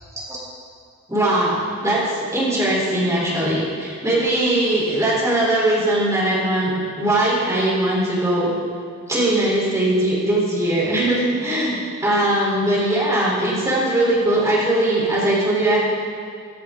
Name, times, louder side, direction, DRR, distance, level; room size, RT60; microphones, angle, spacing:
voice 1, 1.1-8.5 9.1-11.7 12.0-15.8, right 1 dB, 15° right, -6 dB, 4.1 m, -20 dB
15.0 x 14.5 x 3.9 m, 2.3 s
head